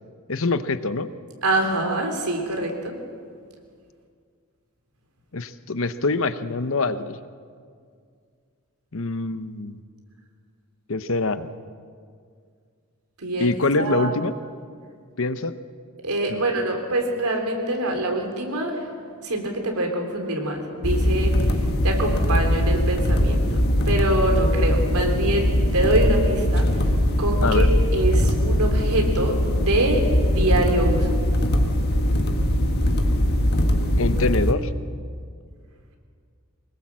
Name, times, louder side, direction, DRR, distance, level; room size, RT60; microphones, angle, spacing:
voice 1, 0.3-1.1 5.3-7.2 8.9-9.8 10.9-11.5 13.4-14.3 15.2-15.5 16.3-16.4 27.4-27.7 34.0-34.7, left 3 dB, 65° left, 12 dB, 0.9 m, -24 dB
voice 2, 1.4-3.0 13.2-14.1 16.0-18.9 19.2-21.3 21.8-23.6 23.9-26.7 27.2-30.0 30.3-31.1, right 1 dB, 85° right, 3 dB, 3.6 m, -25 dB
sound 1, 20.8-34.5, equal, 45° left, 1.5 m, -21 dB
23.5 x 20.5 x 7.5 m, 2.1 s
head